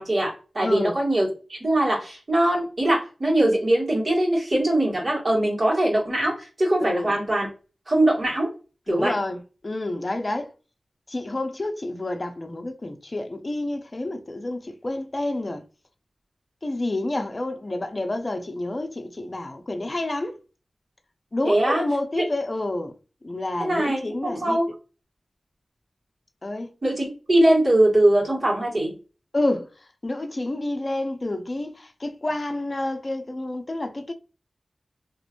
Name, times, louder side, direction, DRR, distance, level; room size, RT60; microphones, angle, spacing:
voice 1, 0.0-7.5 7.9-8.5 8.9-9.1 21.4-21.8 22.2-22.3 23.6-24.7 26.8-29.0, right 1 dB, 45° right, 1.8 m, -22 dB
voice 2, 0.6-0.9 6.8-7.1 8.9-10.5 11.1-15.6 16.6-20.4 21.3-22.9 23.2-24.6 26.4-26.7 29.3-29.7 30.0-34.1, left 2 dB, 40° left, 0.6 m, -29 dB
3.0 x 2.9 x 2.5 m
wide cardioid pair, 70°, 0 cm